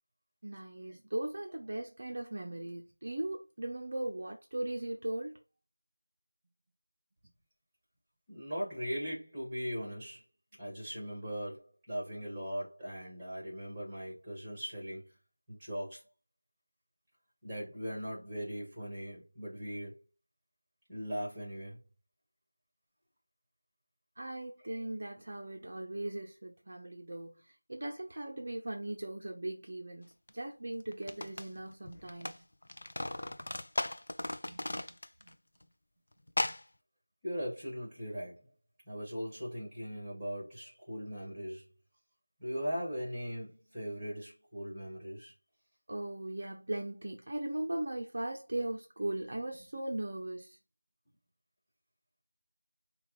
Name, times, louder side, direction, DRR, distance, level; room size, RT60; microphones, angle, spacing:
voice 1, 0.4-5.4 24.2-30.1 30.3-32.4 34.5-34.7 35.2-35.4 45.9-50.6, right 1 dB, 35° right, 0.6 m, -38 dB
voice 2, 8.3-10.2 10.6-15.0 15.5-16.0 17.4-20.0 20.9-21.8 24.6-24.9 37.2-38.5 38.9-41.6 42.4-45.3, equal, 5° right, 1.5 m, -39 dB
sound 1, 30.3-30.4 30.9-32.4 32.6-35.3 35.6-35.7 36.3-36.6, left 1 dB, 45° left, 0.4 m, -36 dB
5.1 x 2.4 x 4.1 m
figure-of-eight pair, 175°, 0 cm